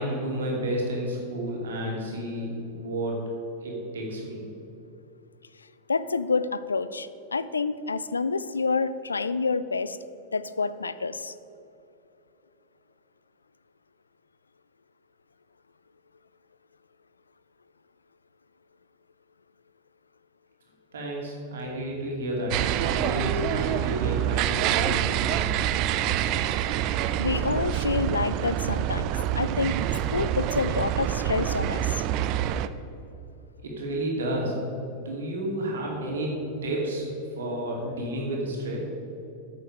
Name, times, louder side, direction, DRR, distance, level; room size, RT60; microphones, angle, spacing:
voice 1, 0.0-3.2 3.6-4.4 20.9-25.5 33.6-34.5 34.9-37.1 37.4-38.8, right 1 dB, 65° right, -2 dB, 2.6 m, -31 dB
voice 2, 5.9-10.0 10.3-11.3 27.2-29.8 30.1-32.0, left 4 dB, 75° left, 15 dB, 0.4 m, -28 dB
sound 1, 22.5-32.7, right 11 dB, 40° right, 0.4 m, -26 dB
8.9 x 7.0 x 6.5 m, 2.8 s
figure-of-eight pair, 90°, 0 cm